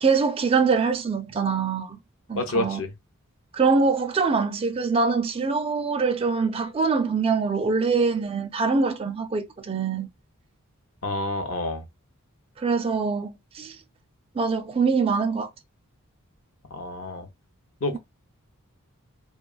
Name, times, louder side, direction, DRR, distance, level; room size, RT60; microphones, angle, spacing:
voice 1, 0.0-2.0 2.3-2.8 3.5-10.1 12.6-13.8 14.4-15.5, right 4 dB, 25° right, 0.3 m, -24 dB
voice 2, 2.3-2.9 11.0-11.8 16.7-17.3 17.8-18.0, left 2 dB, 60° left, 0.6 m, -28 dB
2.8 x 2.2 x 2.3 m
head